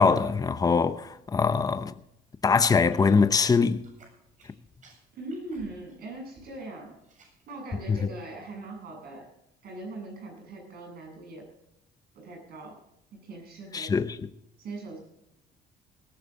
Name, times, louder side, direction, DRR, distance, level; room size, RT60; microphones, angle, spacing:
voice 1, 0.0-1.9 2.4-3.8 7.9-8.0 13.7-14.3, left 5 dB, 20° left, 0.8 m, -23 dB
sound 1, 2.9-4.5 4.8-6.7 6.9-7.4 7.9-8.2, right 3 dB, 50° right, 7.9 m, -56 dB
voice 2, 5.1-7.0 7.5-9.3 9.6-11.5 12.1-12.8 13.1-13.9 14.6-15.0, right 2 dB, 65° right, 7.9 m, -40 dB
19.0 x 14.0 x 3.9 m
cardioid pair, 110°, 17 cm